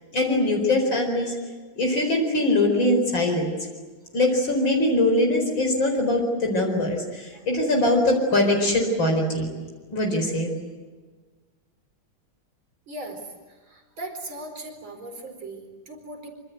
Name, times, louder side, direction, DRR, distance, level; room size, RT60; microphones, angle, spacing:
voice 1, 0.1-1.4 1.8-3.6 4.1-9.5 9.9-10.5, left 1 dB, 70° left, 1 dB, 5.3 m, -22 dB
voice 2, 12.9-13.2 13.5-16.3, right 1 dB, 75° right, 4 dB, 5.3 m, -38 dB
26.0 x 26.0 x 8.0 m, 1.4 s
omnidirectional pair, 2.2 m